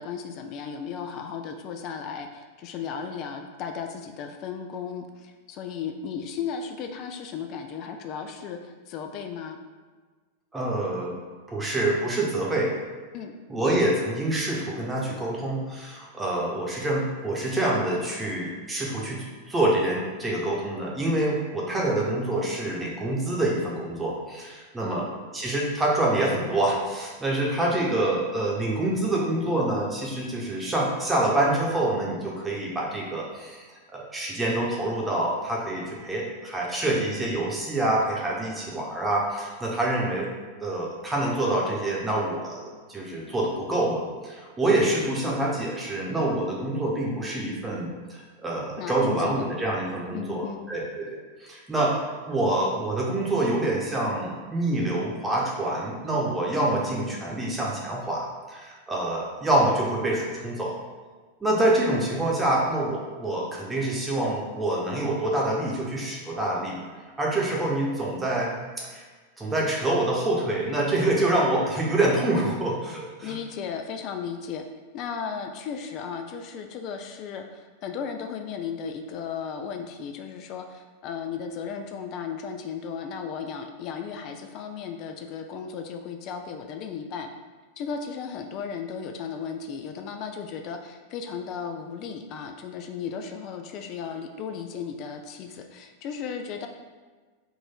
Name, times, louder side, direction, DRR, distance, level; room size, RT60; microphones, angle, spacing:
voice 1, 0.0-9.6 13.1-13.3 24.8-25.1 36.8-37.0 48.8-49.2 50.1-50.6 73.2-74.6 74.9-87.3 87.8-96.7, left 6 dB, 40° left, 5 dB, 0.4 m, -35 dB
voice 2, 10.5-11.2 11.5-12.7 13.5-25.1 25.3-40.3 40.6-52.0 52.3-60.7 61.4-66.8 67.2-69.0 69.4-73.3, right 1 dB, 10° right, -3 dB, 1.0 m, -26 dB
3.9 x 2.5 x 4.4 m, 1.4 s
figure-of-eight pair, 90°, 0 cm